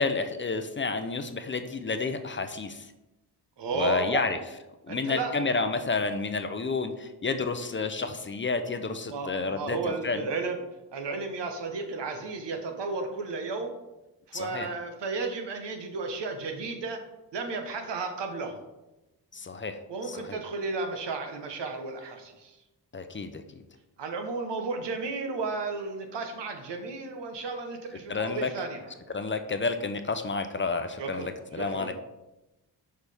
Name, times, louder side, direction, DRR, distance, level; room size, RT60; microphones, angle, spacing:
voice 1, 0.0-2.9 3.7-4.4 4.8-10.3 14.3-14.7 19.3-19.8 20.1-20.4 22.9-23.6 28.1-28.5 29.1-31.9, left 4 dB, 30° left, 8 dB, 0.5 m, -30 dB
voice 2, 3.6-4.3 4.9-5.3 9.1-10.6 10.9-13.8 14.3-17.0 17.3-18.6 19.9-22.6 24.0-28.9 31.0-31.9, right 3 dB, 80° right, 5 dB, 1.1 m, -33 dB
6.2 x 5.6 x 3.4 m, 1.0 s
cardioid pair, 80°, 42 cm